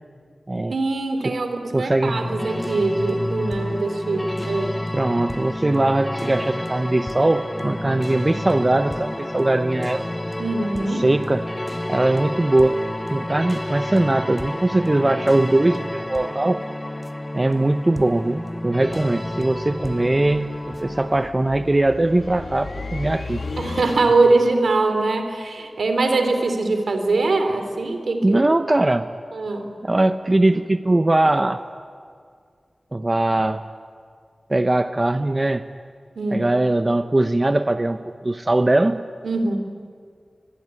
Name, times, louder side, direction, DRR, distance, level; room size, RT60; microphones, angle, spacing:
voice 1, 0.7-4.8 10.4-11.1 23.6-28.4 29.3-29.7 36.2-36.5 39.2-39.6, right 3 dB, 85° right, 7 dB, 3.2 m, -22 dB
voice 2, 1.7-2.1 4.9-10.1 11.0-11.5 11.9-12.8 13.1-16.6 17.3-23.5 28.2-29.1 29.8-31.6 32.9-33.6 34.5-35.6 36.3-39.0, right 2 dB, 35° right, 10 dB, 0.9 m, -20 dB
sound 1, 2.0-21.3, left 1 dB, 20° left, 0.7 m, -30 dB
sound 2, 18.9-24.5, left 3 dB, 80° left, 1.8 m, -36 dB
24.5 x 22.0 x 9.7 m, 2.1 s
cardioid pair, 40°, 0 cm